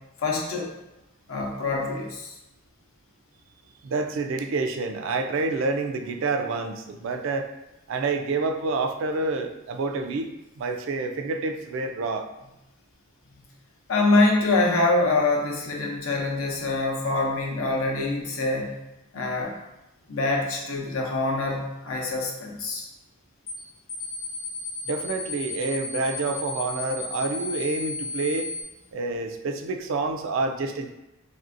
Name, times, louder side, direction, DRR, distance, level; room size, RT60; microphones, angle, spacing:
voice 1, 0.2-0.7 1.3-2.3 13.9-18.7 19.1-19.5 20.1-22.9, left 2 dB, 85° left, 0 dB, 0.6 m, -25 dB
voice 2, 3.8-7.5 7.9-10.3 10.6-12.3 24.9-28.5 28.9-30.9, right 3 dB, 65° right, 5 dB, 0.3 m, -28 dB
sound 1, 23.5-23.6 23.9-28.6, left 4 dB, 20° left, 0.5 m, -33 dB
3.2 x 2.6 x 2.5 m, 0.94 s
head